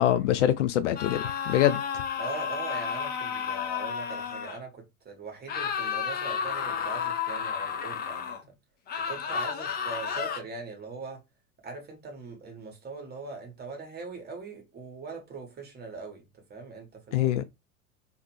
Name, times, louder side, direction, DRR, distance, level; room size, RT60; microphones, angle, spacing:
voice 1, 0.0-1.8 17.1-17.4, left 12 dB, 55° left, 0.5 m, -24 dB
sound 1, 1.0-4.6 5.5-8.4 8.9-10.4, left 7 dB, 20° left, 0.7 m, -32 dB
voice 2, 2.2-8.4 9.0-11.2 11.6-17.3, right 3 dB, 20° right, 1.5 m, -41 dB
3.2 x 3.1 x 3.1 m
figure-of-eight pair, 85°, 44 cm